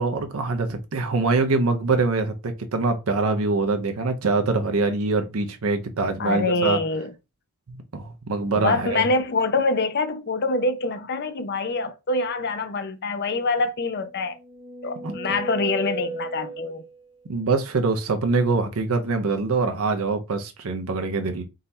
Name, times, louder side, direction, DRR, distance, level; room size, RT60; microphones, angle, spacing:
voice 1, 0.0-6.8 7.9-9.1 15.0-15.2 17.3-21.4, right 3 dB, 75° right, 0.7 m, -24 dB
voice 2, 6.2-7.1 8.6-14.4 14.8-16.8, left 3 dB, 50° left, 0.6 m, -25 dB
sound 1, 14.1-17.1, right 3 dB, 25° right, 0.9 m, -35 dB
3.9 x 2.7 x 4.1 m
head